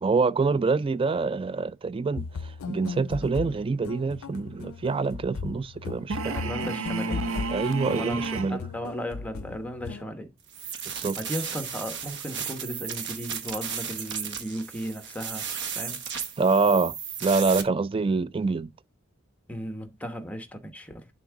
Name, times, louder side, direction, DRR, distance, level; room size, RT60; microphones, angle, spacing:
voice 1, 0.0-6.2 7.5-8.6 10.9-11.2 16.4-16.9 17.2-18.7, right 4 dB, 25° right, 0.3 m, -25 dB
sound 1, 2.2-10.0, left 5 dB, 80° left, 0.4 m, -37 dB
sound 2, 6.1-8.6, right 4 dB, 80° right, 0.6 m, -31 dB
voice 2, 6.2-7.2 7.9-8.2 8.5-10.3 10.8-15.5 15.7-16.0 19.5-21.1, equal, 5° left, 1.0 m, -36 dB
sound 3, 10.5-17.6, right 7 dB, 60° right, 1.0 m, -35 dB
11.0 x 3.7 x 3.6 m
head